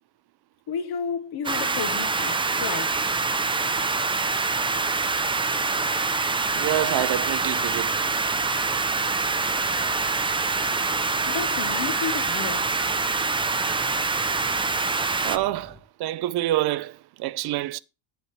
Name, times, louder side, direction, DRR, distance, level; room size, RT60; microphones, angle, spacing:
voice 1, 0.7-3.0 11.3-12.7, left 7 dB, 65° left, 1.3 m, -32 dB
sound 1, 1.4-15.4, right 4 dB, 15° right, 0.5 m, -25 dB
sound 2, 6.4-15.8, left 1 dB, 5° left, 1.0 m, -49 dB
voice 2, 6.5-7.9 15.2-17.8, right 14 dB, 65° right, 0.5 m, -27 dB
10.0 x 8.0 x 3.1 m
cardioid pair, 145°, 41 cm